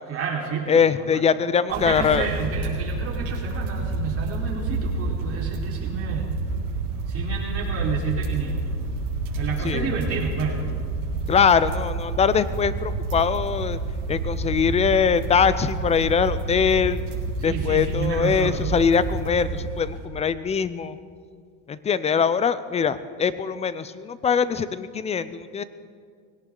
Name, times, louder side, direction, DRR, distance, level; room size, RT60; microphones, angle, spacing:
voice 1, 0.1-1.2 1.7-6.4 7.1-8.8 9.3-10.6 17.4-18.7, right 5 dB, 35° right, -3 dB, 4.3 m, -30 dB
voice 2, 0.7-2.3 9.6-9.9 11.3-13.8 14.1-17.0 17.4-21.0 21.7-25.6, left 6 dB, 15° left, 15 dB, 0.4 m, -22 dB
sound 1, 1.7-20.0, right 3 dB, 50° right, 4.5 m, -29 dB
21.0 x 17.5 x 3.9 m, 2.1 s
supercardioid pair, 125°, 41 cm